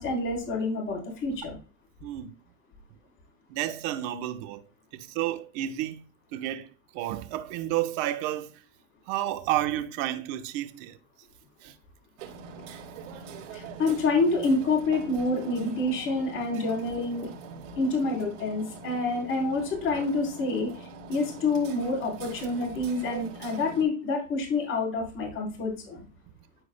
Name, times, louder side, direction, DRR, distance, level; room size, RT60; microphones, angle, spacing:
voice 1, 0.0-1.6 13.5-17.3 17.8-26.1, left 3 dB, 35° left, 3.5 m, -28 dB
voice 2, 2.0-2.3 3.5-4.6 4.9-8.6 9.1-11.0 11.6-11.7 23.1-23.2, right 13 dB, 55° right, 1.2 m, -31 dB
Hammer, 12.2-23.8, right 4 dB, 75° right, 3.8 m, -43 dB
13.5 x 4.7 x 2.2 m
supercardioid pair, 125°, 37 cm